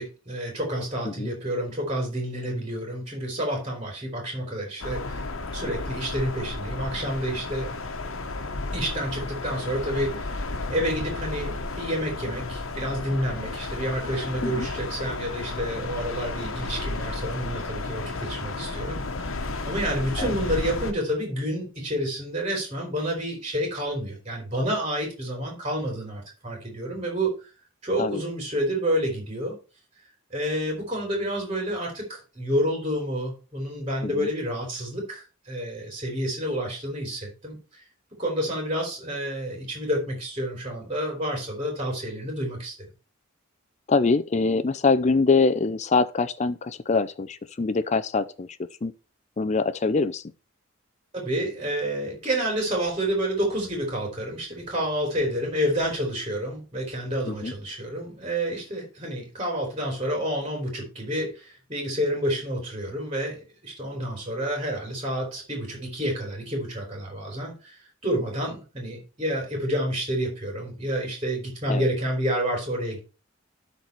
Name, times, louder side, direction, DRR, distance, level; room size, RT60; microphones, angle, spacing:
voice 1, 0.0-5.2 5.5-7.7 8.7-10.4 10.7-19.3 19.6-27.3 27.8-29.6 30.3-37.8 38.2-42.7 51.1-73.0, equal, 25° right, 3.3 m, -29 dB
sound 1, 4.8-20.9, left 3 dB, 75° left, 1.1 m, -33 dB
voice 2, 43.9-48.5 48.8-48.9 49.4-50.2 57.3-57.5 71.7-71.9, left 4 dB, 35° left, 0.4 m, -24 dB
12.5 x 4.1 x 4.5 m
head